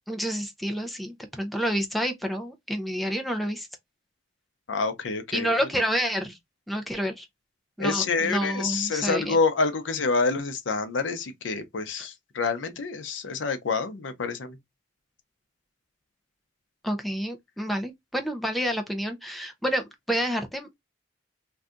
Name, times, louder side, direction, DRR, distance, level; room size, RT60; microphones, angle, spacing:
voice 1, 0.1-3.7 5.3-6.4 6.7-7.3 7.8-9.4 12.0-12.1 16.8-20.7, equal, ahead, 0.5 m, -29 dB
voice 2, 4.7-5.7 7.8-14.6, left 4 dB, 80° left, 0.6 m, -27 dB
2.6 x 2.3 x 3.6 m
head